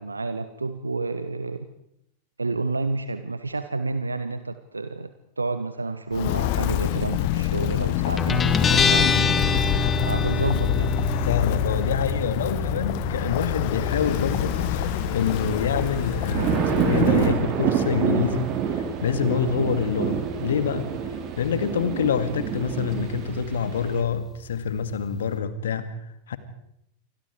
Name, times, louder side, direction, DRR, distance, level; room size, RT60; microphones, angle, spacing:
voice 1, 0.0-1.7 2.4-5.1 5.4-9.4 10.0-10.9, right 3 dB, 80° right, 11 dB, 1.1 m, -30 dB
Walk footsteps, 6.1-17.4, left 13 dB, 50° left, 1.3 m, -27 dB
Guitar, 8.2-25.4, left 3 dB, 20° left, 1.7 m, -29 dB
voice 2, 11.2-20.9 21.4-26.0 26.3-26.4, left 6 dB, 65° left, 12 dB, 2.2 m, -26 dB
sound 1, 13.8-24.0, right 8 dB, 40° right, 3.8 m, -28 dB
28.0 x 25.0 x 4.8 m, 0.77 s
figure-of-eight pair, 90°, 0 cm